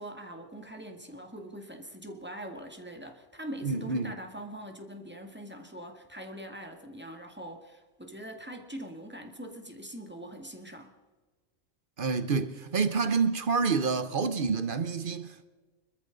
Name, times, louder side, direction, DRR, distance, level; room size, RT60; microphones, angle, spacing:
voice 1, 0.0-10.9, right 1 dB, 10° right, 1.7 m, -43 dB
voice 2, 3.6-4.1 12.0-15.5, right 5 dB, 45° right, 0.9 m, -28 dB
25.0 x 13.5 x 3.9 m
omnidirectional pair, 1.4 m